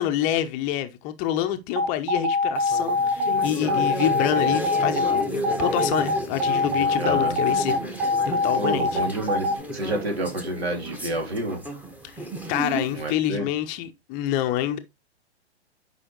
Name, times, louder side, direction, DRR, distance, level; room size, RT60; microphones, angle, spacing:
voice 1, 0.0-7.7 8.0-9.0 12.5-14.8, left 12 dB, 25° left, 0.7 m, -27 dB
sound 1, 1.7-9.5, left 2 dB, 45° right, 5.6 m, -23 dB
sound 2, 2.6-13.1, equal, 5° right, 1.1 m, -33 dB
voice 2, 7.0-7.4 8.5-9.5 9.7-11.6 12.9-13.5, right 1 dB, 70° right, 3.2 m, -29 dB
11.0 x 5.6 x 3.0 m
figure-of-eight pair, 115°, 33 cm